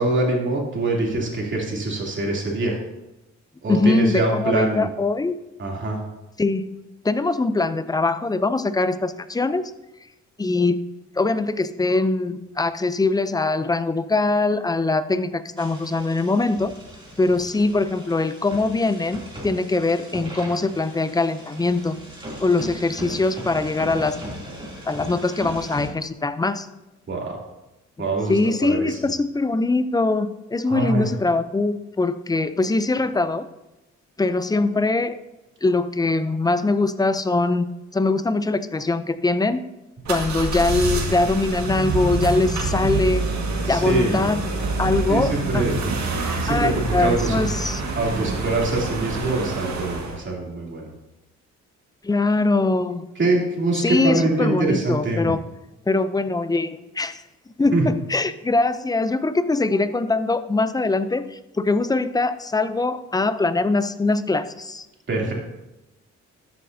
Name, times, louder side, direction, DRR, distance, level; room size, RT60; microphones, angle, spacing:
voice 1, 0.0-2.8 3.6-4.9 5.6-6.0 27.1-27.4 28.0-29.0 30.6-31.1 43.7-44.2 45.1-45.8 46.4-47.4 48.0-50.9 53.2-55.3 57.7-57.9 65.1-65.3, right 2 dB, 40° right, -2 dB, 3.0 m, -24 dB
voice 2, 3.7-5.3 6.4-6.7 7.0-9.6 10.4-10.8 11.2-16.7 17.2-22.0 22.4-24.2 24.9-26.7 28.3-33.5 34.2-35.2 35.6-37.7 37.9-39.6 40.1-43.2 43.7-44.4 44.8-45.6 46.5-47.8 52.0-53.1 53.8-55.4 55.9-57.2 57.6-64.9, left 3 dB, 15° left, 13 dB, 0.5 m, -22 dB
sound 1, 15.6-25.9, right 1 dB, 15° right, 2.8 m, -38 dB
sound 2, 40.0-50.2, right 3 dB, 65° right, 1.8 m, -26 dB
13.0 x 7.6 x 2.7 m, 0.96 s
cardioid pair, 90°, 30 cm